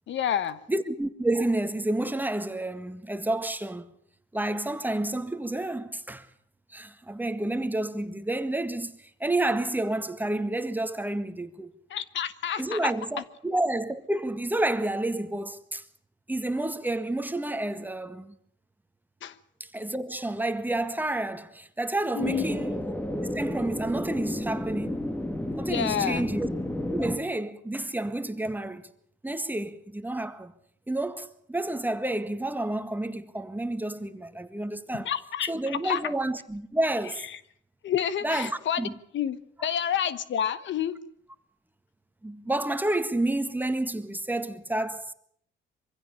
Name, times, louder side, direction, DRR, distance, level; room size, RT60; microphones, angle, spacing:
voice 1, 0.1-0.6 11.9-12.9 19.2-19.4 22.1-22.4 25.7-26.2 35.0-36.0 37.3-37.4 37.8-38.9 39.1-39.4 39.6-41.0, left 9 dB, 70° left, 1.2 m, -29 dB
voice 2, 0.7-3.9 4.3-6.3 6.7-11.7 12.6-15.8 16.3-18.3 19.6-22.9 23.3-25.0 25.6-26.5 26.9-28.9 29.2-30.5 30.9-35.1 35.5-37.3 38.2-38.9 39.6-39.7 42.2-45.1, right 1 dB, 10° right, 1.7 m, -30 dB
sound 1, 22.2-27.2, left 1 dB, 10° left, 1.9 m, -31 dB
24.0 x 16.0 x 8.8 m
cardioid pair, 90°, 20 cm